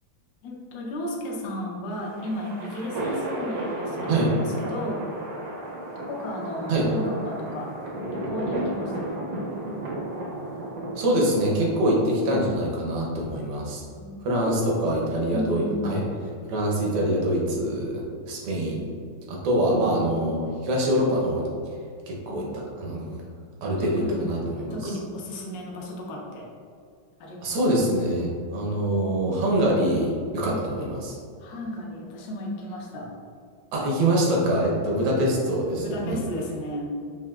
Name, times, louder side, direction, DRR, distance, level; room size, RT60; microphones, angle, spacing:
voice 1, 0.4-5.0 6.1-7.7 8.1-9.3 14.0-14.5 15.3-16.0 22.3-23.3 23.8-26.5 27.2-27.7 30.5-30.6 31.4-33.1 34.9-35.3 35.8-36.9, left 1 dB, 70° left, -2 dB, 1.3 m, -34 dB
sound 1, 1.9-12.4, right 1 dB, 70° right, 0.8 m, -33 dB
voice 2, 11.0-13.8 14.2-16.0 16.5-18.9 19.3-21.5 22.1-22.5 22.8-23.1 23.6-24.9 27.4-31.2 33.7-36.2, right 1 dB, 85° right, -3 dB, 1.8 m, -24 dB
5.6 x 2.6 x 2.3 m, 2.3 s
omnidirectional pair, 2.4 m